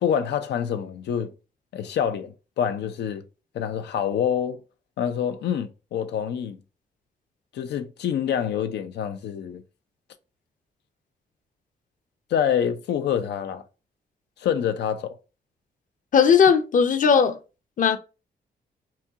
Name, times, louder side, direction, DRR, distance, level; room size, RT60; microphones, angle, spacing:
voice 1, 0.0-1.3 1.7-3.2 3.5-4.6 5.0-6.6 7.5-9.6 12.3-13.6 14.4-15.1, left 8 dB, 90° left, 0.7 m, -26 dB
voice 2, 16.1-17.4 17.8-18.0, left 6 dB, 50° left, 0.7 m, -17 dB
4.2 x 2.3 x 3.6 m
cardioid pair, 115°, 17 cm